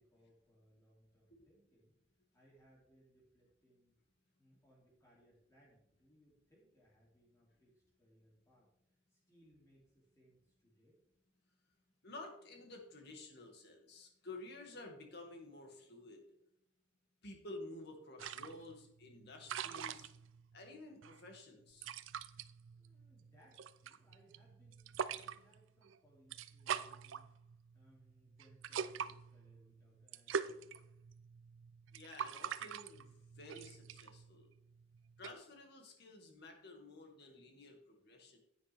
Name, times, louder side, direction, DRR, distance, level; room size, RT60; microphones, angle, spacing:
voice 1, 0.0-2.0 2.3-3.9 4.4-11.0 22.7-27.4 27.7-30.8, equal, 15° left, -5 dB, 2.8 m, -69 dB
voice 2, 12.0-16.2 17.2-20.1 20.5-22.0 31.9-34.5 35.2-38.4, left 2 dB, 60° left, 2 dB, 2.2 m, -52 dB
sound 1, 18.2-35.3, right 7 dB, 80° right, 0.5 m, -45 dB
10.0 x 9.4 x 3.5 m, 0.77 s
head